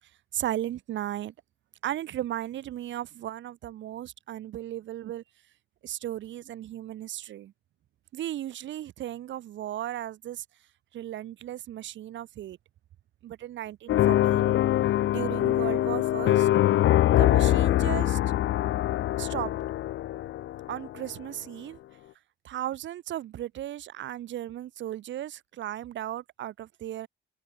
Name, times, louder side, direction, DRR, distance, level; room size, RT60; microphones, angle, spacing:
voice 1, 0.3-1.3 1.8-5.2 5.8-7.5 8.1-10.4 10.9-12.6 13.2-14.5 15.1-16.5 17.1-18.2 19.2-19.6 20.7-21.8 22.4-27.1, right 12 dB, 70° right, 1.0 m, -35 dB
sound 1, 13.9-21.0, left 14 dB, 70° left, 0.8 m, -24 dB
cardioid pair, 90°, 20 cm